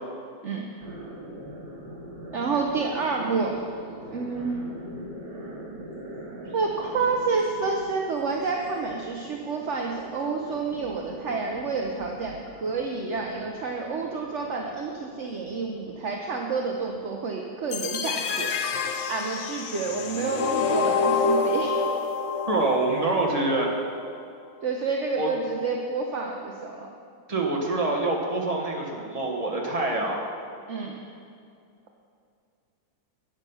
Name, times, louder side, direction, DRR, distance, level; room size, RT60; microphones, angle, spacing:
sound 1, 0.8-17.1, right 1 dB, 80° right, 3.1 m, -43 dB
voice 1, 2.3-3.5 4.1-4.6 6.5-18.5 19.1-21.8 24.6-26.9 30.7-30.9, right 4 dB, 55° right, 1 dB, 0.8 m, -29 dB
sound 2, 17.7-23.7, left 4 dB, 70° left, 0.7 m, -27 dB
voice 2, 22.5-23.7 25.2-25.3 27.3-30.2, right 2 dB, 20° right, -1 dB, 1.4 m, -25 dB
12.5 x 8.8 x 5.5 m, 2.4 s
omnidirectional pair, 2.1 m